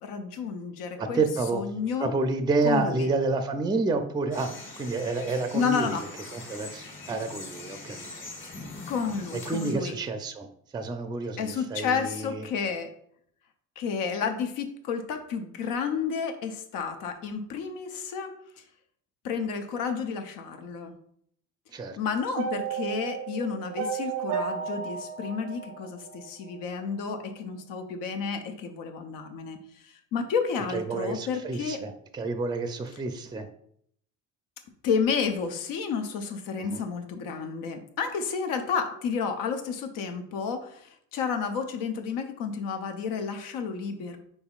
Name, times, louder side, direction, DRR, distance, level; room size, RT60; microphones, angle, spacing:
voice 1, 0.0-1.2 1.5-2.1 2.6-3.1 5.5-6.1 8.9-10.0 11.4-12.9 13.8-18.6 19.2-21.0 22.0-29.6 29.8-31.8 34.8-44.2, left 6 dB, 85° left, 7 dB, 0.7 m, -31 dB
voice 2, 1.0-1.6 2.0-6.0 6.3-8.3 9.5-10.5 10.7-12.5 21.7-22.0 30.7-33.5 36.6-36.8, right 3 dB, 15° right, 8 dB, 0.4 m, -29 dB
sound 1, 4.3-9.7, left 3 dB, 40° left, 1.3 m, -42 dB
sound 2, 22.4-26.5, right 7 dB, 90° right, 0.6 m, -33 dB
5.5 x 4.0 x 2.4 m, 0.67 s
cardioid pair, 100°, 32 cm